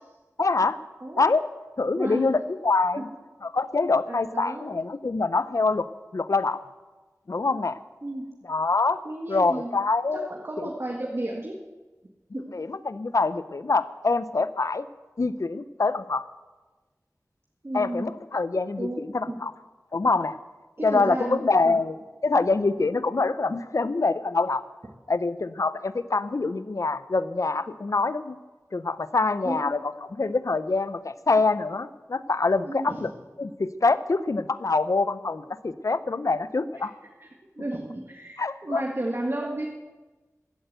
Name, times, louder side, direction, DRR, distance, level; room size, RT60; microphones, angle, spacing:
voice 1, 0.4-0.8 1.2-1.5 1.8-3.1 3.4-5.9 6.1-6.6 7.3-7.8 8.5-9.0 9.3-10.3 12.5-14.9 15.2-16.3 17.7-19.5 19.9-20.3 20.8-22.0 22.2-24.6 25.1-28.4 28.7-29.8 30.2-33.1 33.4-36.9 38.4-38.8, left 3 dB, 65° left, 14 dB, 0.6 m, -25 dB
voice 2, 1.9-2.4 3.0-3.1 4.1-4.6 8.0-8.2 9.0-9.7 10.1-11.6 12.3-12.4 17.6-18.1 18.8-19.4 20.8-21.8 29.4-29.7 32.6-33.1 37.2-37.3 37.6-39.7, right 1 dB, 45° right, 0 dB, 1.7 m, -32 dB
14.5 x 9.0 x 8.1 m, 1.2 s
wide cardioid pair, 55°, 6 cm